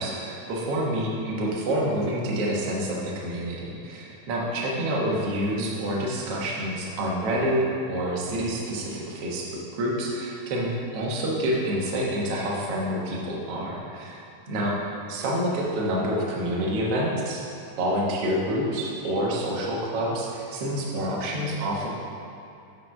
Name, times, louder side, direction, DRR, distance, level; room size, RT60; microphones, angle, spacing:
voice 1, 0.0-14.2 14.5-14.8 15.1-17.4 17.8-21.9, equal, 60° right, -3 dB, 1.7 m, -27 dB
8.5 x 5.0 x 5.8 m, 2.8 s
omnidirectional pair, 4.2 m